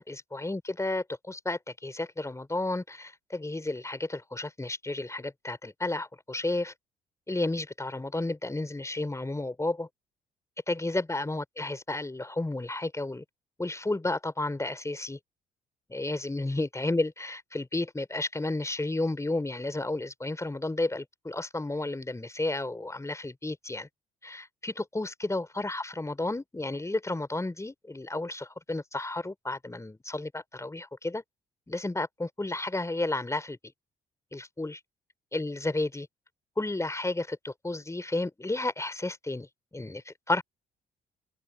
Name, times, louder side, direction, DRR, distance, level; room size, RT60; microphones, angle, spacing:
voice 1, 0.0-6.7 7.3-9.9 10.7-13.2 13.6-15.2 15.9-23.9 24.2-31.2 31.7-33.6 34.3-34.8 35.3-36.1 36.6-39.5 39.7-40.4, left 2 dB, 15° left, 4.4 m, -32 dB
hypercardioid pair, 50°, 18 cm